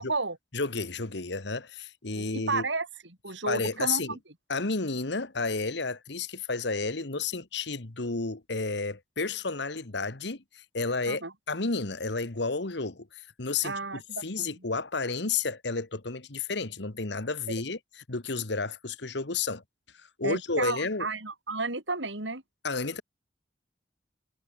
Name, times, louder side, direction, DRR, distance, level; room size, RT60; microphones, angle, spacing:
voice 1, 0.0-0.4 2.1-2.9 3.2-4.2 11.1-11.3 13.6-14.5 20.2-22.4, right 3 dB, 75° right, 5.8 m, -32 dB
voice 2, 0.5-2.6 3.5-4.2 4.5-11.2 11.5-19.6 20.2-21.1 22.6-23.0, left 4 dB, 65° left, 1.6 m, -31 dB
head